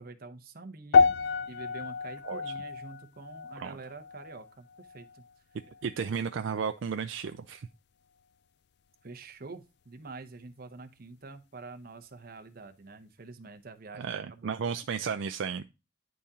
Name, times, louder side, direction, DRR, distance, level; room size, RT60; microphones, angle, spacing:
voice 1, 0.0-5.2 9.0-14.5, right 3 dB, 50° right, 7 dB, 0.8 m, -46 dB
sound 1, 0.9-5.3 5.6-6.0 6.6-6.7, left 5 dB, 55° left, 0.3 m, -29 dB
voice 2, 5.8-7.7 13.9-15.6, right 6 dB, 70° right, 8 dB, 0.4 m, -33 dB
10.0 x 3.7 x 2.7 m, 0.27 s
head